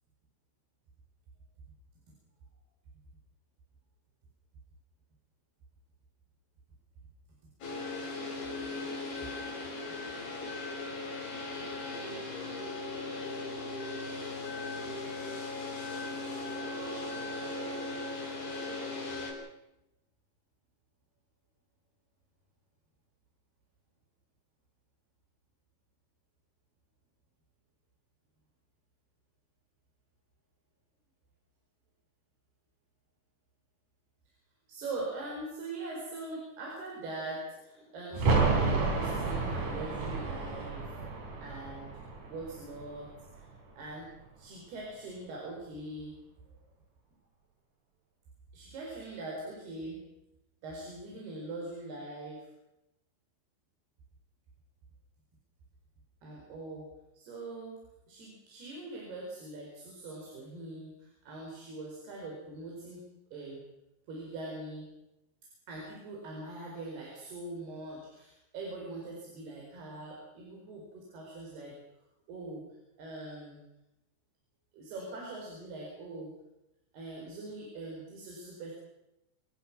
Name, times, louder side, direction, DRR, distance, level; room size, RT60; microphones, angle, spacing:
sound 1, 7.6-19.3, left 2 dB, 70° left, 7.3 m, -38 dB
voice 1, 34.7-41.9 42.3-43.1 43.3-43.5 43.8-44.1 44.4-46.1 48.5-50.0 50.6-52.5 56.2-56.9 57.1-57.7 58.1-63.0 63.3-63.6 64.1-64.9 65.7-71.7 72.3-72.6 73.0-73.6 74.7-76.3 76.9-78.7, right 2 dB, 85° right, -2 dB, 6.9 m, -42 dB
sound 2, 38.1-43.7 44.0-44.1, right 4 dB, 55° right, 5.5 m, -31 dB
27.0 x 19.5 x 6.2 m, 0.91 s
omnidirectional pair, 4.4 m